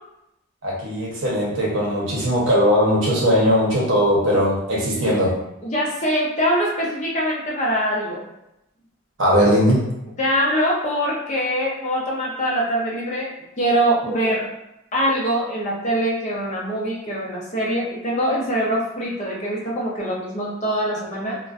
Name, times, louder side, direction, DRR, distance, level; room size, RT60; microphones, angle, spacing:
voice 1, 0.6-5.3 9.2-9.8 14.0-14.2, equal, 60° right, -5 dB, 0.8 m, -19 dB
voice 2, 5.6-8.3 10.2-14.5 14.9-21.4, equal, 35° left, -4 dB, 0.5 m, -23 dB
2.4 x 2.1 x 2.4 m, 0.84 s
head